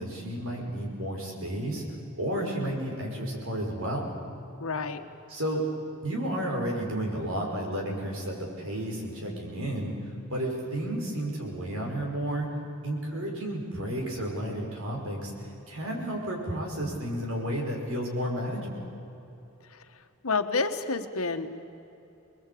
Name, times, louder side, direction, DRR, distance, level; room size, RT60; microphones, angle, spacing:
voice 1, 0.0-1.8 2.2-4.1 5.3-5.6 6.0-10.0 10.3-12.5 12.8-18.9, right 1 dB, 70° right, 0 dB, 5.8 m, -32 dB
voice 2, 4.6-5.0 19.7-19.8 20.2-21.5, left 4 dB, 80° left, 8 dB, 1.4 m, -29 dB
26.5 x 21.0 x 8.6 m, 2.9 s
head